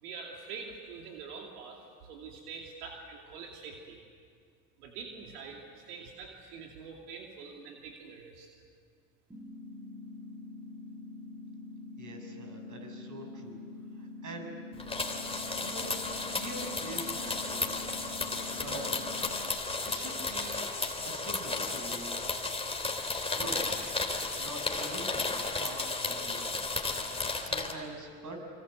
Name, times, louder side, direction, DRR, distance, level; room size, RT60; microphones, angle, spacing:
voice 1, 0.0-4.0 4.8-8.5, right 5 dB, 80° right, 1 dB, 2.8 m, -45 dB
sound 1, 9.3-19.3, left 2 dB, 5° right, 2.1 m, -45 dB
voice 2, 12.0-13.6 13.9-14.5 15.6-15.9 16.2-17.7 18.5-18.9 19.9-20.7 21.0-22.1 23.1-23.8 24.1-26.6 27.2-28.5, right 2 dB, 40° right, 3 dB, 7.1 m, -44 dB
sound 2, 14.8-27.7, left 3 dB, 10° left, 3.3 m, -34 dB
27.0 x 25.0 x 7.9 m, 2.3 s
hypercardioid pair, 85°, 45 cm